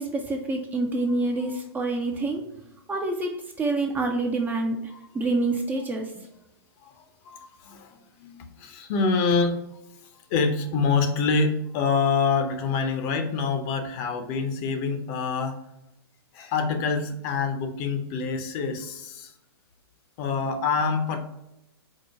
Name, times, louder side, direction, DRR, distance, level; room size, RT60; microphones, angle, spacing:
voice 1, 0.0-2.5 2.9-6.3, right 2 dB, 15° right, 2 dB, 0.4 m, -27 dB
voice 2, 6.8-9.6 10.3-15.6 16.3-19.3 20.2-21.2, left 5 dB, 40° left, 6 dB, 0.6 m, -26 dB
4.6 x 2.1 x 4.4 m, 0.86 s
hypercardioid pair, 130°, 14 cm